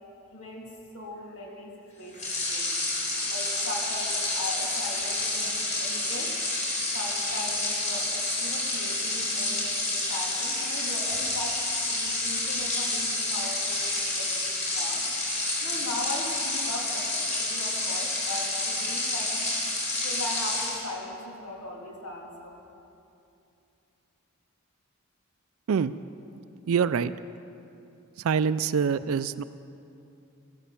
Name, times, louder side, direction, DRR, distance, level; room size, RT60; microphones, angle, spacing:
voice 1, 0.3-2.8 3.3-6.4 6.9-11.6 11.9-15.0 15.6-19.4 20.0-22.6, left 1 dB, 75° left, -1 dB, 2.5 m, -39 dB
sound 1, 2.1-20.8, left 2 dB, 35° left, 4.4 m, -29 dB
voice 2, 26.7-27.1 28.2-29.4, right 6 dB, 65° right, 14 dB, 0.4 m, -25 dB
14.5 x 13.0 x 6.9 m, 2.7 s
head